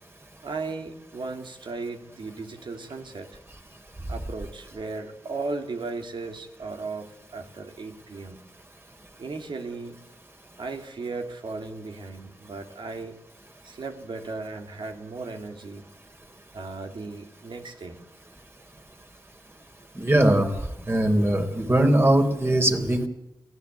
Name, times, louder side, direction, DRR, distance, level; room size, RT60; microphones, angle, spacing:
voice 1, 0.4-3.4 4.1-8.4 9.2-10.0 10.6-13.1 13.6-15.8 16.5-18.0, right 3 dB, 75° right, 5 dB, 2.8 m, -36 dB
voice 2, 20.0-20.5 20.9-23.1, right 1 dB, 30° right, 5 dB, 3.6 m, -20 dB
23.0 x 16.0 x 8.2 m, 0.91 s
wide cardioid pair, 70°, 8 cm